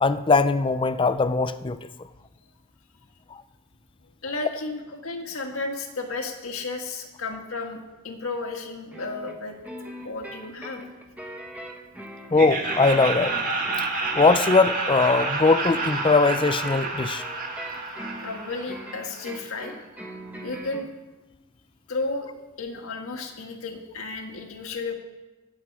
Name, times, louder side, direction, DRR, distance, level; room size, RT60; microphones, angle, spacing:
voice 1, 0.0-1.9 12.3-13.4 14.2-17.2, left 3 dB, 25° left, 12 dB, 0.5 m, -20 dB
voice 2, 4.0-9.6 10.0-10.8 18.2-19.7 20.4-20.9 21.9-22.3 22.6-24.9, left 3 dB, 70° left, 3 dB, 1.7 m, -33 dB
sound 1, 8.9-20.9, equal, 5° right, 1.3 m, -41 dB
Laughter, 12.3-19.3, right 3 dB, 40° right, 1.6 m, -29 dB
18.5 x 7.9 x 4.7 m, 1.1 s
head